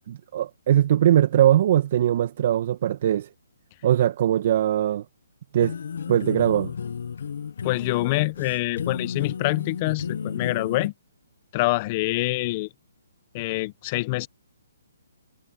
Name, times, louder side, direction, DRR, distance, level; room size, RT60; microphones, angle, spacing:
voice 1, 0.1-3.3 3.8-5.0 5.5-5.7 6.1-6.7, right 11 dB, 45° right, 1.8 m, -21 dB
sound 1, 5.6-10.9, left 7 dB, 65° left, 1.3 m, -33 dB
voice 2, 7.6-10.9 11.5-12.7 13.3-14.3, left 21 dB, 30° left, 1.2 m, -25 dB
hypercardioid pair, 145°, 0 cm